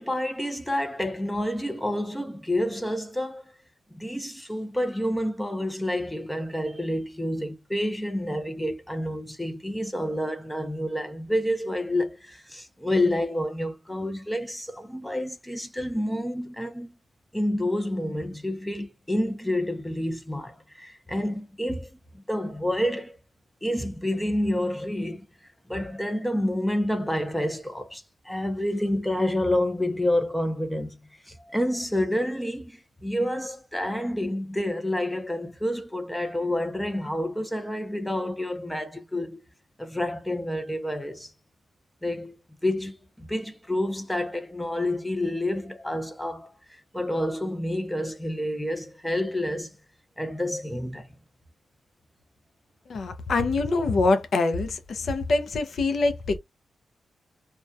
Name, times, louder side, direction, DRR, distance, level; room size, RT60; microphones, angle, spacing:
voice 1, 0.0-3.5 4.0-17.0 17.3-21.9 22.1-23.2 23.6-25.2 25.7-31.0 31.3-39.4 39.8-41.3 42.0-42.4 42.6-49.7 50.2-51.1, left 1 dB, 5° left, 0.5 m, -29 dB
voice 2, 52.9-56.4, left 3 dB, 55° left, 0.5 m, -24 dB
2.2 x 2.2 x 2.5 m
wide cardioid pair, 120°, 0 cm